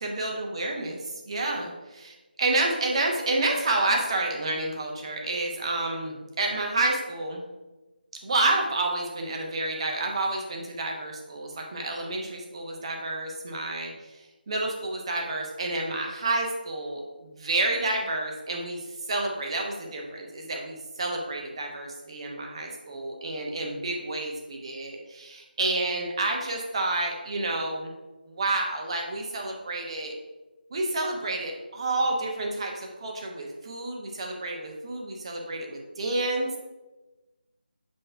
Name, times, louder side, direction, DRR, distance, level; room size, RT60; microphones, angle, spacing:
voice 1, 0.0-7.4 8.2-14.2 14.5-18.8 19.1-27.9 28.3-30.1 30.7-36.6, right 2 dB, 35° right, 1 dB, 1.0 m, -29 dB
8.0 x 3.1 x 4.5 m, 1.1 s
figure-of-eight pair, 170°, 5 cm